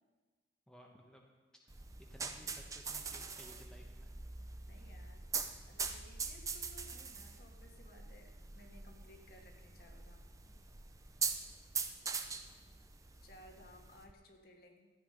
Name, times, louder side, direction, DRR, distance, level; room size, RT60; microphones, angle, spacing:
voice 1, 0.7-1.2 2.1-4.1, equal, 5° left, -1 dB, 1.1 m, -58 dB
sound 1, 1.7-14.1, right 5 dB, 20° right, 0.6 m, -43 dB
voice 2, 4.6-5.2 5.7-10.6 13.2-14.9, left 1 dB, 55° left, 2 dB, 1.6 m, -60 dB
13.5 x 8.4 x 5.2 m, 1.3 s
head